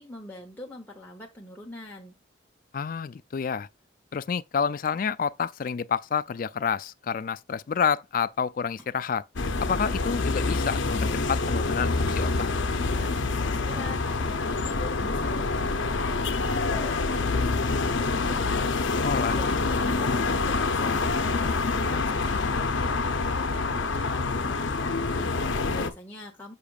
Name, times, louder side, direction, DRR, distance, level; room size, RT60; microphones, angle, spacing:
voice 1, 0.0-2.1 12.9-26.5, left 2 dB, 10° left, 1.0 m, -44 dB
voice 2, 2.7-3.7 4.1-9.2 9.6-12.5 19.0-19.4, left 6 dB, 45° left, 0.3 m, -29 dB
sound 1, 8.8-23.0, right 1 dB, 15° right, 1.6 m, -53 dB
sound 2, 9.4-25.9, left 3 dB, 70° left, 0.7 m, -26 dB
sound 3, 14.6-19.6, equal, 75° right, 3.8 m, -40 dB
6.8 x 5.9 x 2.4 m
head